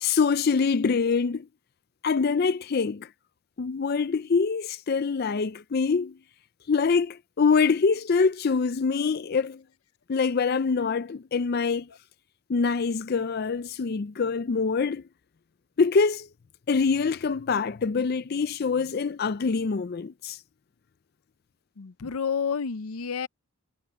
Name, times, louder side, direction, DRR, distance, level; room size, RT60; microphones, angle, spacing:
voice 1, 0.0-1.5 2.0-3.1 3.6-6.2 6.7-9.6 10.1-11.9 12.5-15.0 15.8-16.3 16.7-20.4, left 5 dB, 45° left, 0.4 m, -25 dB
voice 2, 21.8-23.3, left 6 dB, 90° left, 0.6 m, -30 dB
head